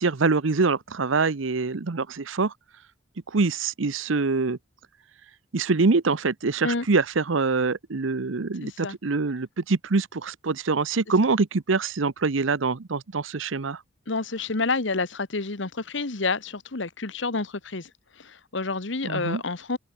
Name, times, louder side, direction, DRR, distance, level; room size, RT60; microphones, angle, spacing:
voice 1, 0.0-2.5 3.3-4.6 5.5-13.8 19.0-19.4, right 4 dB, 85° right, 0.8 m, -24 dB
voice 2, 8.6-8.9 14.1-17.9 18.2-19.8, left 3 dB, 65° left, 1.4 m, -29 dB
open air
head